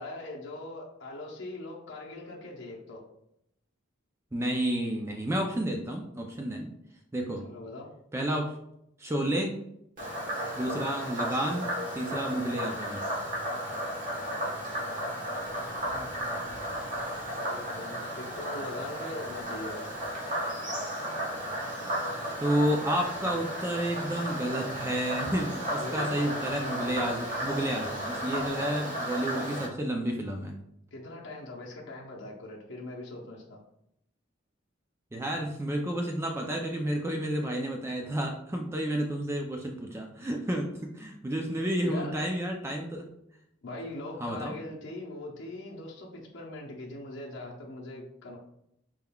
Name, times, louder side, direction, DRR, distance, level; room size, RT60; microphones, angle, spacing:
voice 1, 0.0-3.0 7.4-7.9 15.9-16.5 17.3-19.8 25.8-26.4 30.9-33.6 41.8-42.1 43.6-48.4, left 2 dB, 65° left, -3 dB, 0.8 m, -41 dB
voice 2, 4.3-6.7 7.1-7.4 8.1-8.5 9.0-9.5 10.6-11.7 11.9-13.0 22.4-30.6 35.1-43.1 44.2-44.6, right 1 dB, 15° right, 2 dB, 0.3 m, -31 dB
Frog, 10.0-29.7, equal, 45° right, 1.2 m, -34 dB
4.4 x 3.6 x 2.2 m, 0.78 s
head